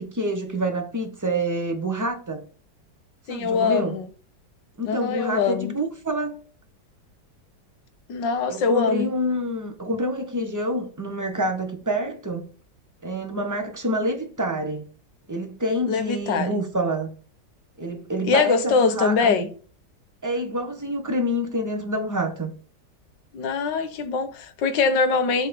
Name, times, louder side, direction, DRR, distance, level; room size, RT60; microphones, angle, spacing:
voice 1, 0.0-2.4 3.3-4.0 4.8-6.4 8.5-12.4 13.0-14.8 15.3-17.1 17.8-19.4 20.2-22.5, right 1 dB, 15° right, 0.9 m, -27 dB
voice 2, 3.3-4.1 4.9-5.7 8.1-9.1 15.9-16.5 18.2-19.5 23.3-25.5, left 5 dB, 90° left, 1.7 m, -23 dB
7.9 x 3.2 x 5.2 m
omnidirectional pair, 1.9 m